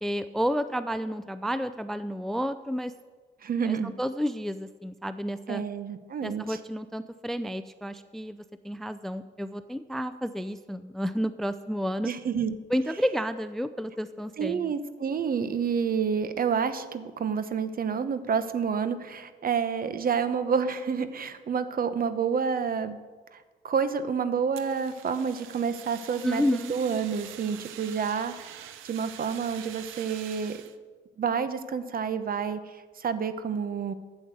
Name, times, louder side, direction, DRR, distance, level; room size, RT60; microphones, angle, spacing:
voice 1, 0.0-2.9 3.6-5.6 6.2-12.1 12.7-14.7 26.2-26.7, equal, ahead, 12 dB, 0.4 m, -31 dB
voice 2, 3.4-3.9 5.5-6.6 12.0-12.5 14.4-23.0 23.3-30.6 31.2-33.9, right 6 dB, 45° right, 11 dB, 1.0 m, -29 dB
Fire, 24.5-30.8, right 11 dB, 90° right, 0.8 m, -45 dB
9.0 x 8.5 x 7.8 m, 1.4 s
cardioid pair, 90°, 20 cm